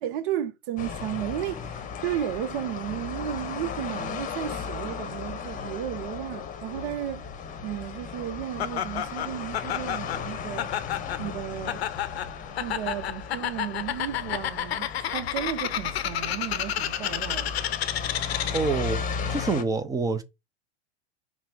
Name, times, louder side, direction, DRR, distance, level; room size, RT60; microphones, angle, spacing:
voice 1, 0.0-7.3 7.6-10.7 11.2-11.8 12.6-17.8, right 11 dB, 50° right, 0.7 m, -34 dB
sound 1, 0.8-19.6, left 6 dB, 25° left, 0.8 m, -36 dB
Laughter, 8.6-18.8, left 11 dB, 70° left, 0.6 m, -31 dB
voice 2, 18.5-19.0 19.3-20.2, right 4 dB, 10° right, 0.5 m, -26 dB
5.3 x 2.0 x 4.8 m
hypercardioid pair, 95°, 33 cm